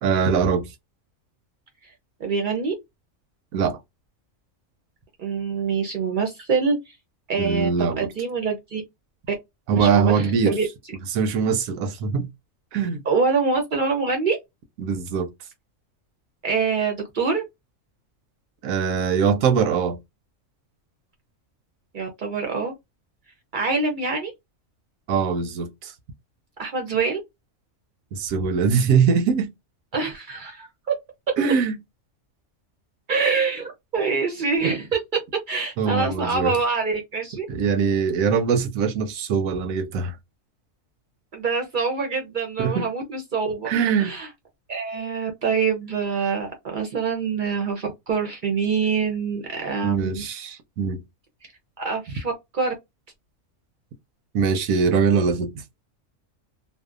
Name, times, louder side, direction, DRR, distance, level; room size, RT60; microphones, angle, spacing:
voice 1, 0.0-0.7 3.5-3.8 7.4-8.1 9.7-10.6 11.1-12.3 12.7-13.0 14.8-15.3 18.6-20.0 25.1-25.9 28.1-29.5 31.4-31.8 35.8-36.5 37.5-40.2 42.6-42.8 43.7-44.1 49.8-51.0 54.3-55.6, right 6 dB, 90° right, 1.0 m, -22 dB
voice 2, 2.2-2.7 5.2-6.9 7.3-8.8 9.7-10.7 13.1-14.4 16.4-17.4 21.9-22.7 23.5-24.3 26.6-27.2 29.9-30.7 33.1-35.0 35.5-37.5 41.3-43.7 44.0-44.3 44.7-50.2 51.8-52.7, right 5 dB, 60° right, 0.5 m, -25 dB
2.7 x 2.0 x 2.3 m
omnidirectional pair, 1.4 m